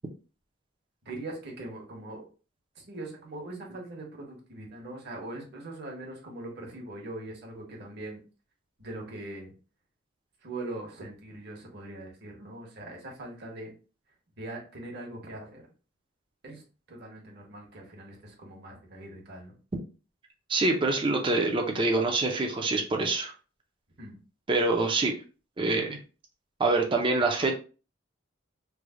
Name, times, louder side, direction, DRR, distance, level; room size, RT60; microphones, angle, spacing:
voice 1, 1.0-2.2 2.7-8.2 8.8-9.5 10.4-13.7 14.4-15.6 16.4-16.6 16.9-19.5 24.0-24.2 27.1-27.2, right 2 dB, 55° right, 0 dB, 1.1 m, -41 dB
voice 2, 20.5-23.3 24.5-25.1 25.6-26.0 26.6-27.5, right 3 dB, 25° right, 2 dB, 0.4 m, -25 dB
3.3 x 2.1 x 3.5 m, 0.35 s
head